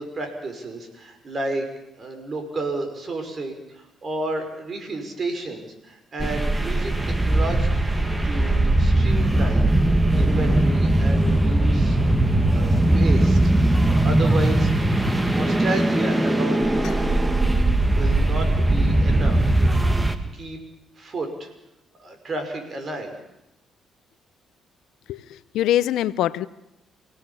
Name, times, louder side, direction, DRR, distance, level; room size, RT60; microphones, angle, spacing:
voice 1, 0.0-1.6 2.0-7.8 8.2-9.7 10.2-12.0 12.5-13.4 13.8-14.7 15.2-16.8 17.9-20.6 21.0-21.5 22.0-23.1, right 2 dB, 45° right, 5 dB, 5.6 m, -32 dB
sound 1, 6.2-20.2, right 1 dB, 15° right, 2.0 m, -20 dB
voice 2, 25.1-26.5, left 12 dB, 85° left, 16 dB, 0.8 m, -23 dB
26.0 x 17.5 x 7.2 m, 0.87 s
cardioid pair, 90°, 0 cm